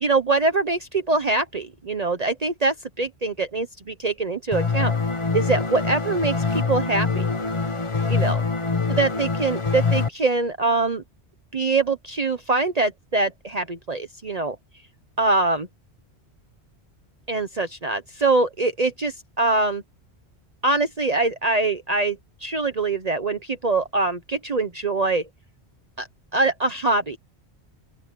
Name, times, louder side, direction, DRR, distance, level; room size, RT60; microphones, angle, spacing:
voice 1, 0.0-4.9 5.3-7.2 8.1-8.4 9.0-11.0 11.5-14.6 15.2-15.7 17.3-19.8 20.6-25.2 26.0-26.1 26.3-27.2, right 3 dB, 40° right, 1.1 m, -23 dB
sound 1, 4.5-10.1, left 4 dB, 30° left, 0.9 m, -24 dB
open air
omnidirectional pair, 1.1 m